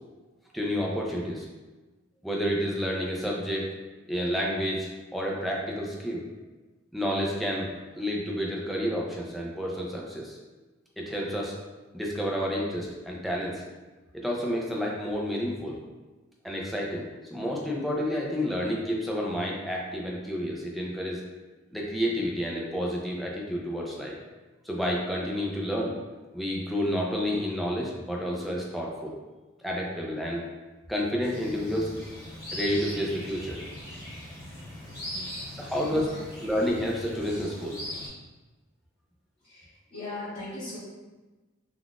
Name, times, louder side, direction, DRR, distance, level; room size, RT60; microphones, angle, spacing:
voice 1, 0.5-1.5 2.2-3.7 4.1-6.2 6.9-7.7 7.9-10.4 11.0-11.5 11.9-13.6 14.1-15.8 16.4-21.2 21.7-24.2 24.6-25.9 26.3-29.2 29.6-30.5 30.9-31.9 32.5-33.6 35.5-36.1 36.4-37.8, equal, ahead, -3 dB, 0.4 m, -30 dB
sound 1, 31.2-38.1, left 1 dB, 15° left, 1.1 m, -40 dB
voice 2, 34.8-35.4 35.7-36.2 39.4-40.8, left 2 dB, 30° left, -16 dB, 1.3 m, -40 dB
3.7 x 2.4 x 2.3 m, 1.2 s
head